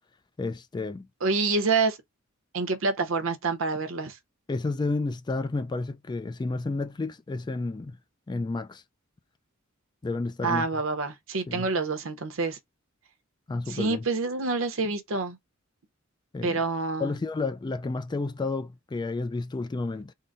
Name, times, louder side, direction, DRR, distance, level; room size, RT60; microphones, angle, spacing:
voice 1, 0.4-1.1 4.5-8.0 8.3-8.8 10.0-10.7 11.5-11.7 13.5-14.0 16.3-16.6 17.0-20.1, left 3 dB, 20° left, 0.3 m, -31 dB
voice 2, 1.2-2.0 2.5-4.2 10.4-12.6 13.7-15.4 16.4-17.1, right 3 dB, 70° right, 0.8 m, -27 dB
3.8 x 2.1 x 3.9 m
head